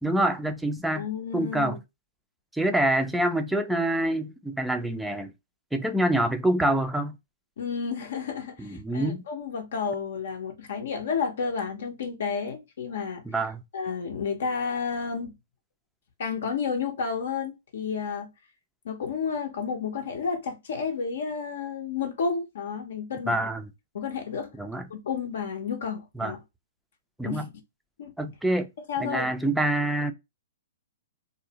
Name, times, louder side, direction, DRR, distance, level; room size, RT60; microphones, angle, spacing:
voice 1, 0.0-1.1 1.3-1.8 2.5-5.3 5.7-7.1 8.6-9.2 13.3-13.6 23.3-23.6 24.6-24.8 26.2-26.3 27.2-27.5 28.2-28.7 29.0-30.1, right 1 dB, 5° right, 0.3 m, -26 dB
voice 2, 0.9-1.8 7.6-13.2 13.7-15.3 16.2-18.3 18.8-23.5 23.9-24.5 24.9-26.4 27.2-27.5 28.0-28.1 28.9-29.3, left 6 dB, 70° left, 0.6 m, -31 dB
2.5 x 2.0 x 2.7 m
hypercardioid pair, 135°, 0 cm